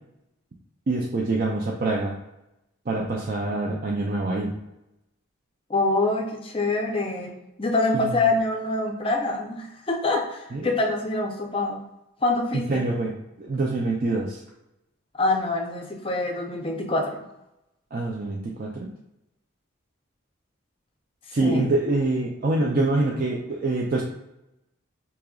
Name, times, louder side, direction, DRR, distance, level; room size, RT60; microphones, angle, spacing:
voice 1, 0.9-2.2 2.9-4.5 7.9-8.1 10.5-10.7 12.5-14.4 17.9-18.9 21.3-24.0, right 2 dB, 45° right, -2 dB, 0.4 m, -25 dB
voice 2, 5.7-11.8 12.2-12.9 15.2-17.2 21.4-21.7, left 2 dB, 25° left, 3 dB, 0.5 m, -25 dB
4.9 x 2.9 x 2.3 m, 0.89 s
head